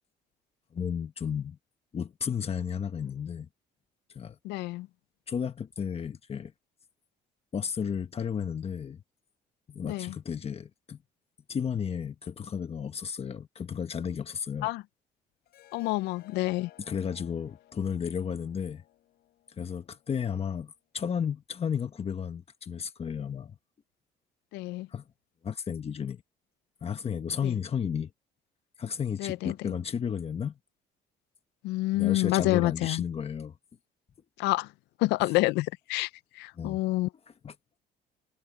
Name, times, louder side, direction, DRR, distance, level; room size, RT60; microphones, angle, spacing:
voice 1, 0.7-1.6 1.9-3.5 4.1-4.4 5.3-6.5 7.5-9.0 9.7-11.0 11.5-14.7 16.9-18.8 19.6-23.6 24.9-25.0 25.4-26.2 26.8-28.1 28.8-30.6 31.9-33.6 36.6-36.8 37.4-37.5, left 7 dB, 35° left, 1.4 m, -33 dB
voice 2, 4.4-4.9 9.8-10.1 14.6-14.8 15.7-16.7 24.5-24.9 27.4-27.5 29.2-29.7 31.6-33.0 34.4-34.7 35.0-36.1 36.4-37.1, left 19 dB, 90° left, 0.4 m, -28 dB
Harp, 15.5-20.6, left 14 dB, 70° left, 4.4 m, -58 dB
cardioid pair, 110°, 17 cm